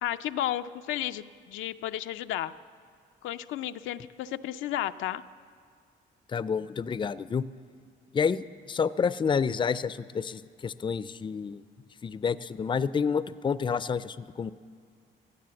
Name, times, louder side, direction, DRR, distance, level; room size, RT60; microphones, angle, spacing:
voice 1, 0.0-2.5 3.2-5.2, left 12 dB, 85° left, 9 dB, 0.5 m, -33 dB
voice 2, 6.3-7.4 8.1-11.6 12.0-14.5, left 6 dB, 25° left, 16 dB, 0.4 m, -29 dB
16.5 x 9.9 x 7.6 m, 2.2 s
cardioid pair, 90°, 20 cm